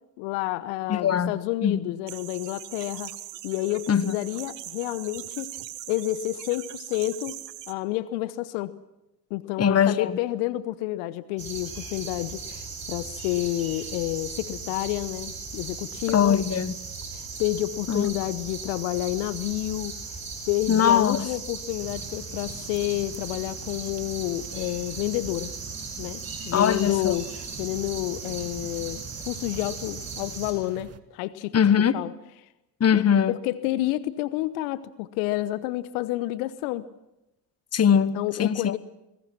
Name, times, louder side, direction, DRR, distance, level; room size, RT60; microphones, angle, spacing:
voice 1, 0.2-3.1 3.4-5.5 5.9-7.3 7.7-8.7 9.3-16.4 17.1-19.9 20.5-25.5 26.0-27.3 27.6-31.6 31.9-32.1 32.9-36.9 38.1-38.8, left 16 dB, 70° left, 1.0 m, -29 dB
voice 2, 0.9-1.3 1.6-1.9 3.9-4.2 9.6-10.2 16.1-16.7 17.9-18.1 20.7-21.3 26.5-27.1 31.5-32.0 32.8-33.4 37.7-38.7, left 8 dB, 30° left, 1.3 m, -21 dB
sound 1, 2.1-7.7, right 13 dB, 80° right, 1.2 m, -40 dB
sound 2, 11.4-30.5, right 4 dB, 45° right, 7.8 m, -37 dB
sound 3, 21.8-31.0, right 6 dB, 30° right, 1.9 m, -45 dB
29.0 x 21.0 x 6.0 m
hypercardioid pair, 55°, 48 cm